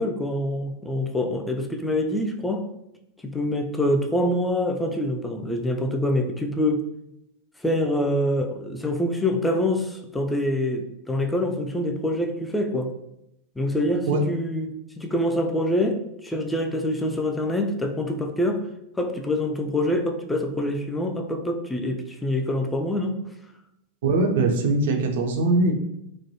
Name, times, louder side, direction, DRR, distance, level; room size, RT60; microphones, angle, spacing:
voice 1, 0.0-2.7 3.2-6.9 7.6-12.9 13.6-18.7 19.0-23.2, left 1 dB, 5° left, 4 dB, 0.3 m, -25 dB
voice 2, 24.0-25.7, right 2 dB, 55° right, 4 dB, 0.4 m, -21 dB
3.1 x 2.1 x 2.7 m, 0.82 s
figure-of-eight pair, 90°, 0 cm